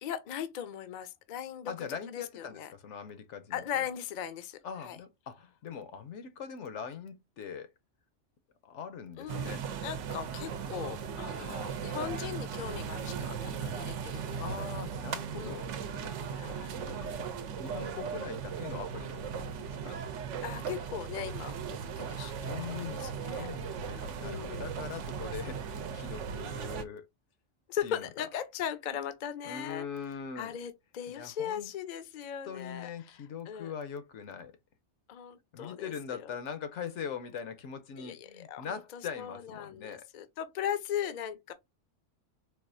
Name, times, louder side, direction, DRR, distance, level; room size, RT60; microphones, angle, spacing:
voice 1, 0.0-2.7 3.5-5.0 9.2-9.6 9.8-14.4 15.3-15.7 16.3-16.8 20.4-23.5 24.2-24.8 27.7-29.9 30.4-33.7 35.1-36.3 38.0-41.5, left 9 dB, 55° left, 0.5 m, -39 dB
voice 2, 1.7-3.9 4.6-7.7 8.6-9.6 14.4-17.2 17.6-20.0 22.4-27.1 27.8-28.1 29.4-30.5 31.2-31.7 32.4-34.5 35.5-40.1, left 7 dB, 80° left, 1.0 m, -42 dB
sound 1, 9.3-26.8, right 7 dB, 80° right, 0.9 m, -37 dB
4.1 x 2.4 x 2.5 m
omnidirectional pair, 1.2 m